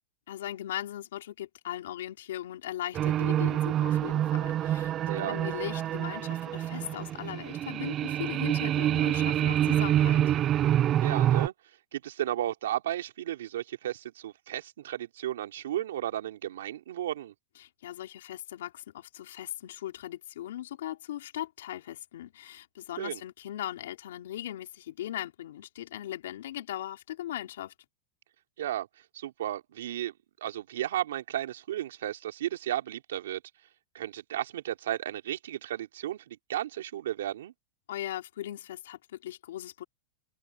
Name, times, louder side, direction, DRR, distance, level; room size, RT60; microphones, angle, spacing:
voice 1, 0.3-10.3 17.6-27.7 37.9-39.8, left 12 dB, 80° left, 4.0 m, -39 dB
sound 1, 2.9-11.5, right 11 dB, 25° right, 0.3 m, -27 dB
voice 2, 5.1-5.4 11.0-11.5 11.9-17.3 23.0-23.2 28.6-28.9 29.1-30.1 30.4-33.4 33.9-37.5, right 12 dB, 85° right, 3.1 m, -34 dB
open air
supercardioid pair, 155°, 0 cm